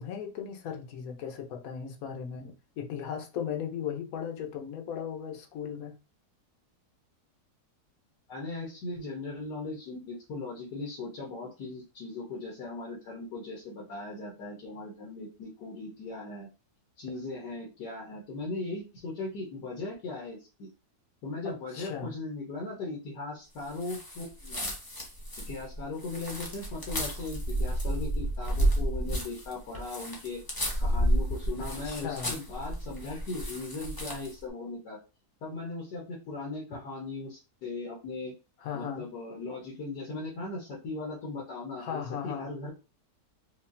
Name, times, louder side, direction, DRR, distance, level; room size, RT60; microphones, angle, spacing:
voice 1, 0.0-5.9 21.4-22.1 31.6-32.3 38.6-39.1 41.8-42.5, left 8 dB, 65° left, 1.1 m, -37 dB
voice 2, 8.3-16.5 17.0-20.7 21.2-24.7 25.4-30.4 30.8-35.0 35.4-38.3 38.7-42.7, left 3 dB, 85° left, 1.7 m, -38 dB
sound 1, 23.8-34.4, right 1 dB, 20° left, 0.7 m, -31 dB
5.1 x 2.4 x 2.6 m
omnidirectional pair, 1.7 m